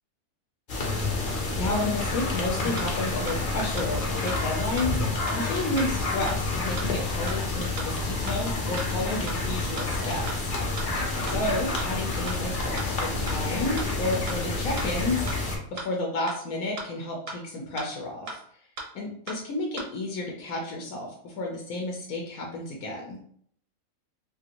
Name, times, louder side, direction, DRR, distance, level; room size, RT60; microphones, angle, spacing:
sound 1, 0.7-15.6, left 2 dB, 45° left, 0.7 m, -29 dB
voice 1, 1.6-10.9 11.2-18.4 18.9-23.2, left 2 dB, 80° left, 0 dB, 1.1 m, -31 dB
sound 2, 2.8-2.9 3.3-3.4 3.8-3.9 4.3-4.4 4.8-4.9 5.3-5.4 5.8-5.9 6.3-6.4 6.8-6.9 7.3-7.4 7.8-7.9 8.3-8.4 8.8-8.9 9.3-9.4 9.8-9.9 10.3-10.4 10.8-10.9 11.3-11.4 11.8-11.9 12.3-12.4 12.8-12.9 13.3-13.4 13.8-13.9 14.3-14.4 14.8-14.9 15.3-15.4 15.8-15.9 16.3-16.4 16.8-16.9 17.3-17.4 17.8-17.9 18.3-18.4 18.8-18.9 19.3-19.4 19.8-19.9, right 2 dB, 70° right, 1.1 m, -36 dB
2.8 x 2.5 x 2.8 m, 0.63 s
omnidirectional pair, 1.5 m